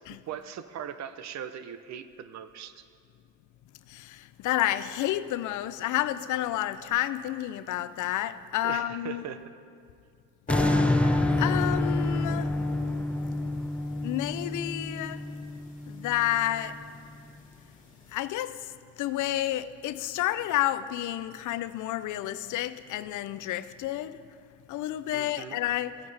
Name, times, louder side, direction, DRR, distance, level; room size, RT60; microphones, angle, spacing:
voice 1, 0.3-2.8 8.6-9.6 25.1-25.6, right 9 dB, 65° right, 11 dB, 0.6 m, -39 dB
voice 2, 3.9-9.3 11.4-12.5 14.0-15.2 15.9-16.8 18.1-18.5 19.0-24.1 24.7-26.0, left 13 dB, 80° left, 14 dB, 0.5 m, -30 dB
sound 1, 10.5-16.8, left 2 dB, 25° left, 2.1 m, -29 dB
sound 2, 10.5-15.6 16.1-16.2, left 1 dB, 5° left, 0.5 m, -31 dB
15.0 x 9.1 x 3.4 m, 2.3 s
cardioid pair, 90°, 30 cm